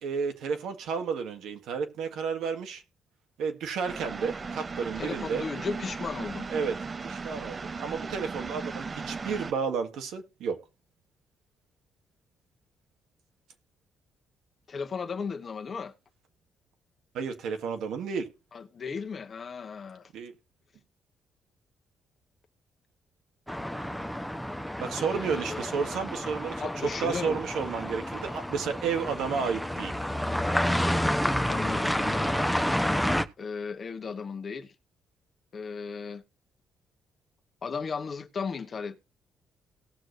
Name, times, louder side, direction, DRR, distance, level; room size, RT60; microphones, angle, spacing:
voice 1, 0.0-2.8 3.4-5.4 6.5-6.8 7.0-10.6 17.1-18.3 20.1-20.3 24.8-30.0, right 6 dB, 80° right, 1.6 m, -32 dB
sound 1, 3.9-9.5, right 4 dB, 35° right, 0.6 m, -37 dB
voice 2, 4.9-6.5 14.7-15.9 18.5-20.1 25.0-25.6 26.6-27.4 31.5-32.3 33.4-34.7 35.5-36.2 37.6-39.0, left 5 dB, 45° left, 1.2 m, -35 dB
sound 2, 23.5-33.3, equal, ahead, 0.9 m, -29 dB
18.0 x 6.3 x 2.6 m
cardioid pair, 90°, 0 cm